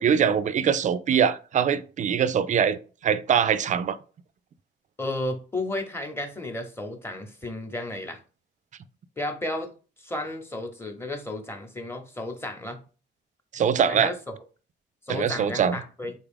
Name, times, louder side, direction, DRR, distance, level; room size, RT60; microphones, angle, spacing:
voice 1, 0.0-2.8 3.0-4.0 13.5-14.1 15.1-15.8, right 7 dB, 40° right, 0.4 m, -23 dB
voice 2, 5.0-8.2 9.2-9.7 10.0-12.8 13.9-14.1 15.1-16.1, left 1 dB, 10° left, 0.9 m, -33 dB
3.9 x 2.3 x 3.5 m
cardioid pair, 90°, 20 cm